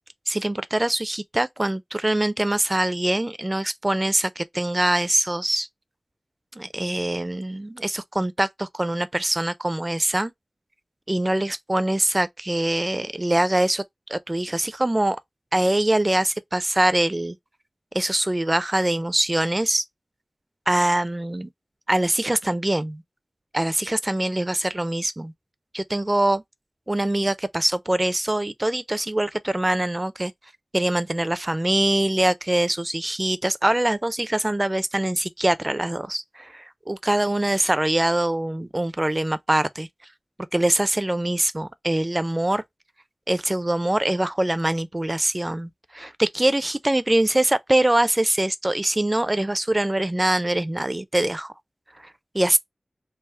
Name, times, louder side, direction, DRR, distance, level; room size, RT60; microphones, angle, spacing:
voice 1, 0.3-5.7 6.6-10.3 11.1-13.8 14.1-15.2 15.5-17.4 17.9-19.8 20.7-21.5 21.9-23.0 23.5-25.3 25.7-26.4 26.9-30.3 30.7-39.9 40.5-42.6 43.3-51.5 52.3-52.6, right 1 dB, 25° right, 0.5 m, -23 dB
3.4 x 2.0 x 4.2 m
wide cardioid pair, 50°, 0 cm